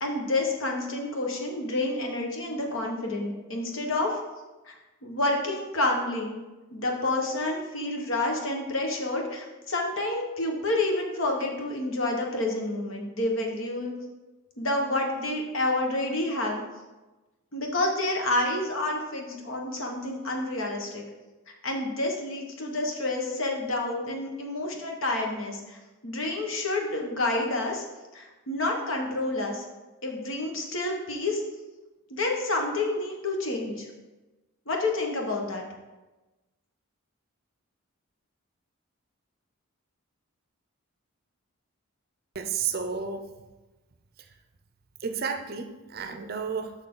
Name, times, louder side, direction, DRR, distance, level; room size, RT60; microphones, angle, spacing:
voice 1, 0.0-4.2 4.7-4.8 5.0-6.4 6.7-13.9 14.6-16.6 17.5-21.0 21.6-25.8 26.0-27.8 28.1-29.6 30.0-31.4 32.1-33.9 34.7-35.6, left 2 dB, 60° left, 1 dB, 1.2 m, -29 dB
voice 2, 42.3-43.2 45.0-46.7, right 6 dB, 45° right, 7 dB, 0.5 m, -31 dB
6.6 x 6.2 x 3.8 m, 1.1 s
head